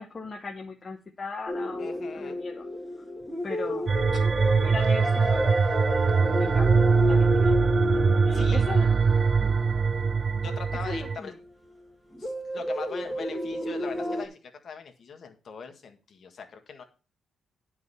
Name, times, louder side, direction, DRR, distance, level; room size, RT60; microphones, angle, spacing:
voice 1, 0.0-1.9 2.1-2.6 3.0-3.1 3.4-4.2 4.6-5.5 6.0-8.9 9.4-9.6 10.7-11.4, left 3 dB, 25° left, 0 dB, 1.0 m, -39 dB
sound 1, 1.5-11.1 12.1-14.3, left 1 dB, ahead, 1.6 m, -30 dB
voice 2, 1.8-2.4 8.3-8.6 10.4-11.3 12.2-16.8, left 5 dB, 45° left, 5 dB, 1.7 m, -41 dB
sound 2, 3.9-11.2, right 5 dB, 30° right, 0.3 m, -23 dB
10.5 x 4.8 x 5.6 m, 0.34 s
cardioid pair, 155°, 0 cm